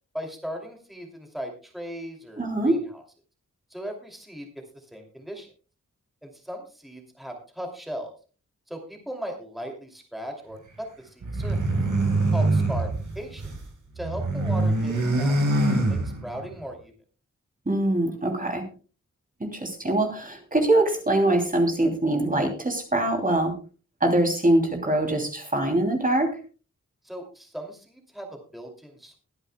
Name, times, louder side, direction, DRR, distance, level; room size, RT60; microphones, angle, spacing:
voice 1, 0.1-3.0 3.7-4.5 4.7-5.5 6.2-8.1 8.7-11.8 12.3-13.5 13.9-16.9 27.0-29.2, equal, ahead, 2 dB, 2.7 m, -38 dB
voice 2, 2.4-2.8 17.7-18.7 19.4-23.5 24.0-26.3, right 1 dB, 25° right, 3 dB, 2.9 m, -23 dB
sound 1, 11.2-13.6 13.9-16.5, right 2 dB, 75° right, 3.9 m, -24 dB
22.0 x 10.0 x 2.3 m, 0.36 s
wide cardioid pair, 105°, 31 cm